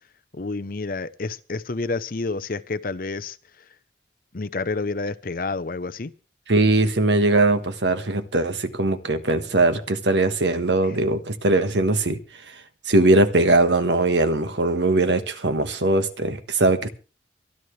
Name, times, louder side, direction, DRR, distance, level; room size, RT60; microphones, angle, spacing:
voice 1, 0.3-3.4 4.3-6.1, left 3 dB, 50° left, 0.7 m, -29 dB
voice 2, 6.5-12.2 12.8-16.9, right 2 dB, 80° right, 1.5 m, -20 dB
24.5 x 11.0 x 3.3 m
head